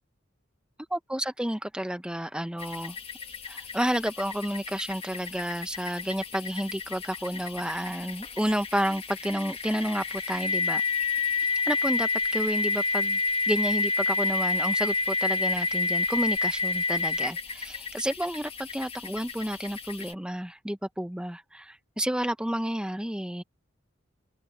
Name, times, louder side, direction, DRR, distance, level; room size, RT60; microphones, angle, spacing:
voice 1, 0.9-3.0 3.5-10.8 11.4-13.2 13.5-23.4, equal, 5° right, 0.7 m, -31 dB
sound 1, 2.6-20.1, left 4 dB, 30° left, 1.6 m, -30 dB
open air
head